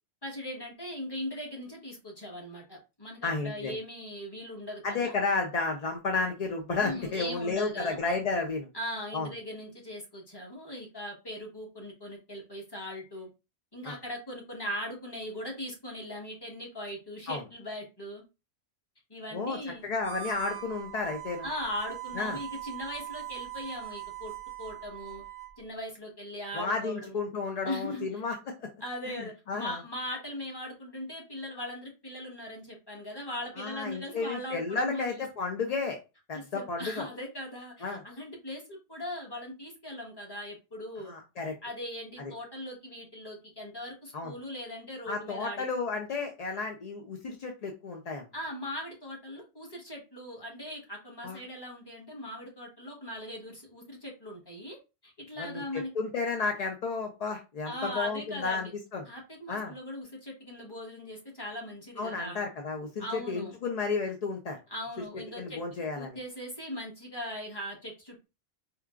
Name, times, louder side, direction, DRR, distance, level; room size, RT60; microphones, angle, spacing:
voice 1, 0.2-5.1 6.8-8.0 8.7-13.3 13.7-18.2 19.1-19.8 21.4-24.3 24.6-25.2 25.6-27.2 27.6-28.1 28.8-35.2 36.3-41.1 41.6-45.6 48.3-54.8 55.0-55.9 57.6-58.7 59.1-62.4 63.0-63.5 64.7-65.6 65.9-68.3, left 1 dB, 20° left, 1.1 m, -39 dB
voice 2, 3.2-3.8 4.8-8.7 9.1-9.3 13.8-13.9 17.3-17.4 19.3-21.5 22.1-22.4 26.5-28.7 29.1-29.8 33.6-36.0 36.3-37.0 37.8-38.0 41.0-41.6 42.2-42.3 44.1-44.3 45.1-48.3 51.2-51.4 55.4-59.0 59.5-59.7 62.0-64.6 65.0-65.1 65.4-66.2, left 4 dB, 60° left, 0.4 m, -32 dB
Harmonica, 19.9-25.6, right 13 dB, 45° right, 0.6 m, -41 dB
4.4 x 2.3 x 2.4 m
omnidirectional pair, 1.2 m